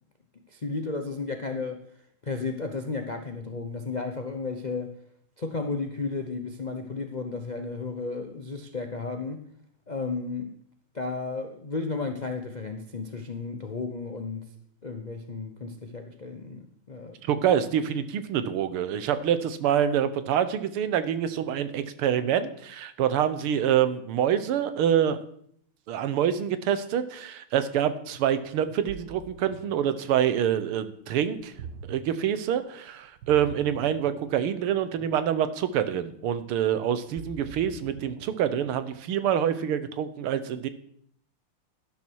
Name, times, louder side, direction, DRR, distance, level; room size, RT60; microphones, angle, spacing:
voice 1, 0.5-1.8 2.2-4.9 5.4-9.4 9.9-10.5 10.9-14.5 14.8-17.2, left 4 dB, 80° left, 0.4 m, -33 dB
voice 2, 17.3-25.2 25.9-31.5 31.8-40.7, right 9 dB, 85° right, 1.8 m, -26 dB
Ocean, 28.6-39.2, right 6 dB, 60° right, 1.6 m, -46 dB
12.0 x 11.5 x 4.6 m
omnidirectional pair, 2.3 m